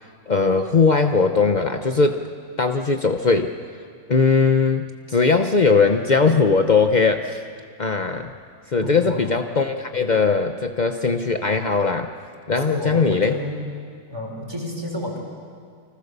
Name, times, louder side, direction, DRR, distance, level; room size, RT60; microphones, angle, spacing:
voice 1, 0.3-2.3 2.6-3.5 4.1-7.4 7.8-8.3 8.7-12.1 12.5-13.3, left 4 dB, 55° left, 5 dB, 0.4 m, -19 dB
voice 2, 8.8-9.2 12.6-13.7 14.1-15.2, left 1 dB, 10° right, 0 dB, 5.0 m, -30 dB
30.0 x 25.5 x 6.8 m, 2.1 s
omnidirectional pair, 2.3 m